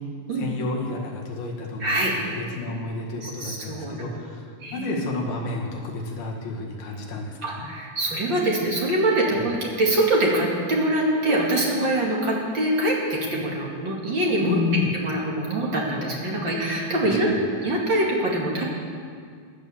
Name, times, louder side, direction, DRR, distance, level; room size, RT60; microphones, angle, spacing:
voice 1, 0.4-2.0 2.2-7.7 9.3-9.4 14.4-14.9 17.0-17.2, left 3 dB, 65° left, -1 dB, 3.5 m, -30 dB
voice 2, 1.8-2.1 3.2-4.1 4.6-4.9 7.4-14.6 14.9-17.3 17.6-18.6, right 1 dB, 35° right, -3 dB, 2.2 m, -24 dB
16.5 x 10.5 x 7.0 m, 2.1 s
omnidirectional pair, 4.6 m